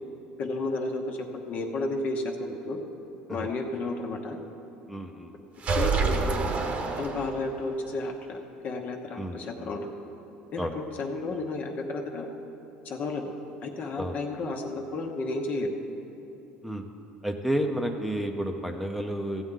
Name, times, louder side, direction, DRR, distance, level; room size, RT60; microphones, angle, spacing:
voice 1, 0.4-2.8 3.3-4.4 5.7-6.4 7.0-9.9 10.5-12.3 12.8-13.3 13.6-15.7, left 2 dB, 50° left, 3 dB, 1.0 m, -32 dB
voice 2, 4.9-5.3 9.2-9.8 10.6-10.7 14.0-14.2 16.6-16.8 17.2-19.4, right 1 dB, ahead, 3 dB, 0.7 m, -31 dB
sound 1, 5.6-7.7, right 4 dB, 40° right, 1.0 m, -27 dB
15.0 x 7.9 x 3.8 m, 3.0 s
supercardioid pair, 90°, 3 cm